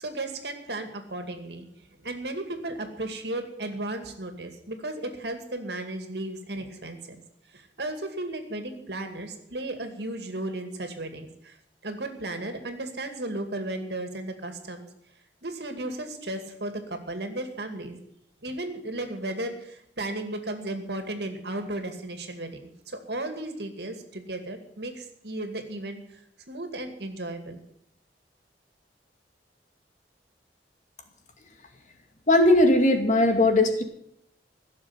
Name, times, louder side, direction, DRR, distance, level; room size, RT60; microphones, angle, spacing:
voice 1, 0.0-1.7 2.0-7.0 7.5-11.6 11.8-14.9 15.4-18.0 18.4-22.6 22.9-26.2 26.5-27.6, right 2 dB, 65° right, 6 dB, 2.3 m, -35 dB
voice 2, 32.3-33.8, left 1 dB, 45° left, 5 dB, 2.3 m, -19 dB
16.0 x 7.2 x 9.6 m, 0.72 s
head